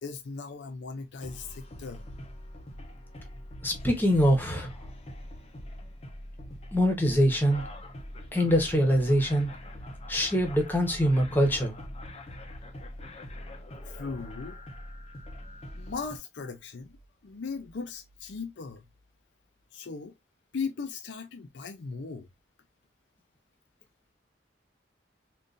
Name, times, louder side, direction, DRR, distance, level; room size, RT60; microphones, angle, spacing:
voice 1, 0.0-2.1 13.8-14.6 15.7-17.0 17.2-18.9 19.7-20.1 20.5-22.3, left 4 dB, 80° left, 0.5 m, -38 dB
sound 1, 1.2-16.2, left 1 dB, 35° left, 0.6 m, -43 dB
voice 2, 3.6-4.7 6.7-7.6 8.3-9.5 10.1-11.8, equal, 10° left, 1.0 m, -24 dB
3.8 x 2.5 x 2.5 m
head